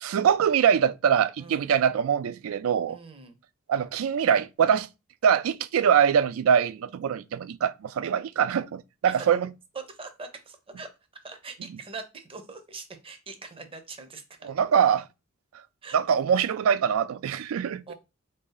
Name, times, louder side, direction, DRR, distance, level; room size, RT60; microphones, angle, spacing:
voice 1, 0.0-3.0 3.7-4.9 5.2-9.5 14.4-15.0 15.9-17.9, right 7 dB, 70° right, 0.3 m, -23 dB
voice 2, 1.4-1.7 2.9-3.4 9.0-9.3 9.7-10.9 11.2-14.5 15.8-16.0 17.9-18.0, right 4 dB, 25° right, 0.6 m, -42 dB
3.5 x 2.7 x 3.8 m
head